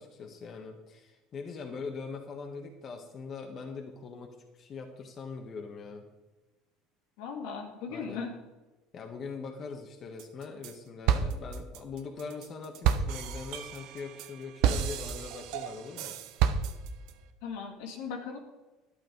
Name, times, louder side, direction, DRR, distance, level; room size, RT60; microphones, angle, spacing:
voice 1, 0.0-6.1 7.9-8.3 8.9-16.2, left 4 dB, 45° left, 3 dB, 1.4 m, -42 dB
voice 2, 7.2-8.3 17.4-18.4, left 5 dB, 80° left, 3 dB, 2.2 m, -38 dB
sound 1, 10.2-10.7 11.1-17.1, right 8 dB, 70° right, 0.9 m, -30 dB
11.0 x 8.6 x 5.3 m, 1.1 s
supercardioid pair, 95°, 0 cm